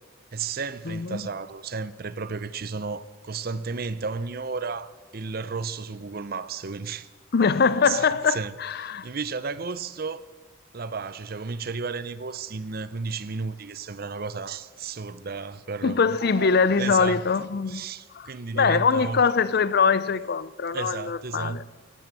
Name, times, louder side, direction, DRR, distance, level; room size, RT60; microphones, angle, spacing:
voice 1, 0.3-7.1 7.8-8.5 8.8-10.2 10.7-17.2 17.7-19.2 20.7-21.7, right 4 dB, 45° right, 0.6 m, -33 dB
voice 2, 0.9-1.3 7.3-9.1 15.8-17.8 18.1-21.6, left 5 dB, 50° left, 0.5 m, -23 dB
13.5 x 12.5 x 8.3 m
head